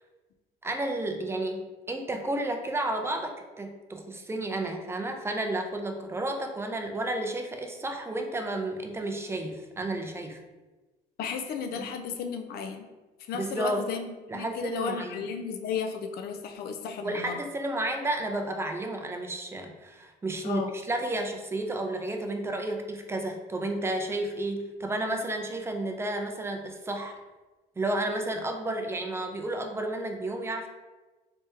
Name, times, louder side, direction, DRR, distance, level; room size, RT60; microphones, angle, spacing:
voice 1, 0.6-10.4 11.8-11.9 13.3-13.9 14.3-15.3 17.0-27.2 27.8-30.7, right 1 dB, 15° right, 4 dB, 0.5 m, -32 dB
voice 2, 11.2-12.9 13.3-17.4 20.4-20.7, left 6 dB, 65° left, 6 dB, 0.4 m, -34 dB
3.3 x 3.3 x 2.8 m, 1.2 s
cardioid pair, 110°, 17 cm